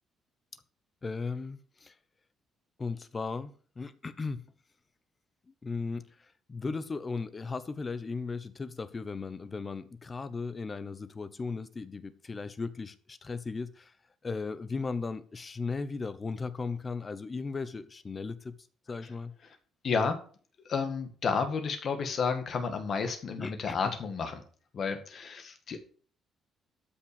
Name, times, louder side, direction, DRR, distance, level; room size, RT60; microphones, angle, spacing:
voice 1, 1.0-1.9 2.8-4.4 5.5-6.1 6.5-13.9 14.2-18.6 18.9-19.3 23.4-23.9, left 4 dB, 20° left, 0.8 m, -36 dB
voice 2, 19.8-20.2 20.7-24.4 24.7-25.8, left 5 dB, 40° left, 1.8 m, -31 dB
12.5 x 6.0 x 6.8 m
cardioid pair, 170°, 0 cm